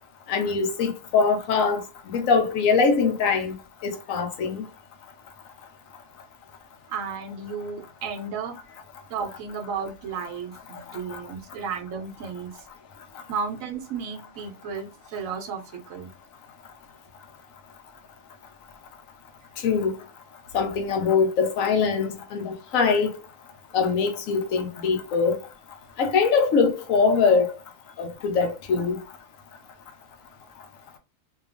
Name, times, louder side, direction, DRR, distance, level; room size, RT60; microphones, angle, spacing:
voice 1, 0.3-1.8 2.1-3.5 3.8-4.6 11.1-11.2 19.6-19.9 20.5-23.1 23.7-25.4 26.0-27.5 28.0-29.0, left 5 dB, 80° left, 1.1 m, -22 dB
voice 2, 6.9-8.6 9.1-12.6 13.3-16.1, right 5 dB, 80° right, 1.1 m, -33 dB
2.8 x 2.4 x 2.4 m
omnidirectional pair, 1.4 m